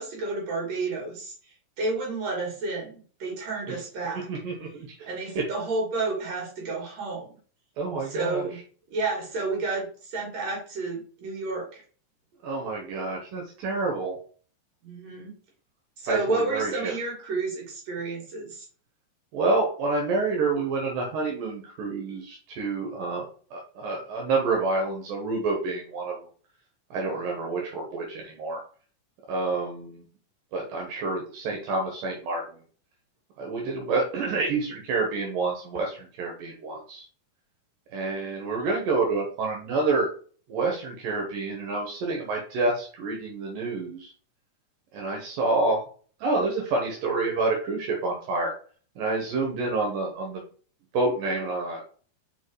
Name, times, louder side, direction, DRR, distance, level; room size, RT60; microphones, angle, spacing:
voice 1, 0.0-1.3 1.8-4.3 5.0-7.3 8.1-8.6 8.9-11.8 14.8-15.3 16.0-18.7, right 3 dB, 50° right, -1 dB, 3.7 m, -31 dB
voice 2, 4.3-5.1 5.4-5.5 7.8-8.5 12.4-14.2 16.1-16.9 19.3-26.2 26.9-28.6 29.3-30.0 30.5-32.6 33.4-37.1 37.9-40.1 40.5-44.1 44.9-45.8 46.2-48.5 49.0-50.4 50.9-51.8, right 3 dB, 75° right, 0 dB, 3.0 m, -28 dB
5.5 x 5.2 x 4.8 m, 0.42 s
omnidirectional pair, 4.0 m